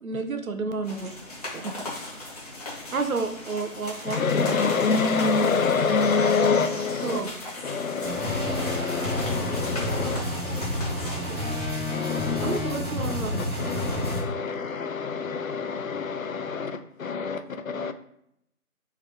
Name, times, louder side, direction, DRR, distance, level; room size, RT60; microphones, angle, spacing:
voice 1, 0.0-1.2 1.5-1.7 2.9-4.2 7.0-7.3 12.4-13.5, right 4 dB, 70° right, 0.7 m, -30 dB
sound 1, 0.8-11.8, left 2 dB, 25° left, 1.1 m, -38 dB
voice 2, 4.1-7.2 7.6-10.2 11.9-12.6 13.3-17.9, left 5 dB, 70° left, 0.5 m, -26 dB
sound 2, 8.0-14.2, left 1 dB, 20° right, 0.8 m, -29 dB
voice 3, 9.8-11.4 17.2-17.4, right 2 dB, 10° left, 1.2 m, -45 dB
3.9 x 3.3 x 3.0 m
figure-of-eight pair, 155°, 43 cm